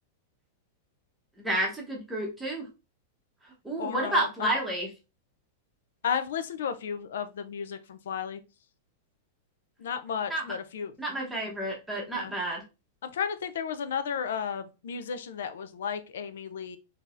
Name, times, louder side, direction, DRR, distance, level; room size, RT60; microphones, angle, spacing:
voice 1, 1.4-2.7 3.6-4.9 10.3-10.5 11.0-12.6, right 1 dB, 5° right, 0.9 m, -30 dB
voice 2, 3.8-4.5 6.0-8.4 9.8-11.0 12.1-12.3 13.0-16.8, left 7 dB, 85° left, 0.5 m, -33 dB
3.8 x 2.8 x 2.5 m
supercardioid pair, 160°, 0 cm